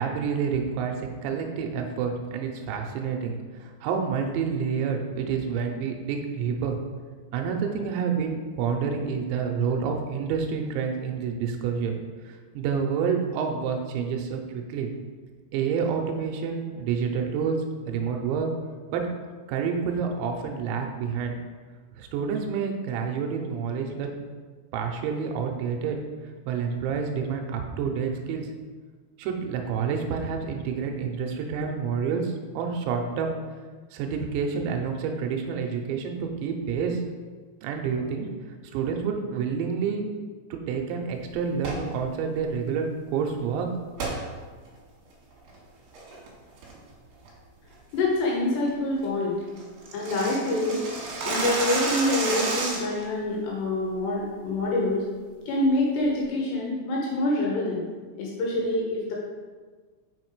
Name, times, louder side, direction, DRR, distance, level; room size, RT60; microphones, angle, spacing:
voice 1, 0.0-6.8 7.3-12.0 12.3-14.9 15.5-17.6 17.9-18.5 18.9-19.0 19.5-21.4 22.0-24.1 24.7-26.0 26.5-28.5 29.2-33.4 33.9-37.0 37.6-38.3 38.7-40.1 40.5-43.7, right 6 dB, 85° right, 3 dB, 2.8 m, -28 dB
sound 1, 41.5-41.9 44.0-44.2 44.7-44.8 45.3-45.6 45.9-46.3 46.6-46.9 47.2-47.3 47.7-48.0 48.3-48.4 48.7-48.8 49.0-49.1 49.4-53.0, right 3 dB, 65° right, 2.6 m, -30 dB
voice 2, 47.9-49.4 49.9-50.8 51.2-55.0 55.5-57.8 58.2-59.2, left 1 dB, 75° left, -3 dB, 2.8 m, -26 dB
6.4 x 5.1 x 4.7 m, 1.4 s
omnidirectional pair, 5.7 m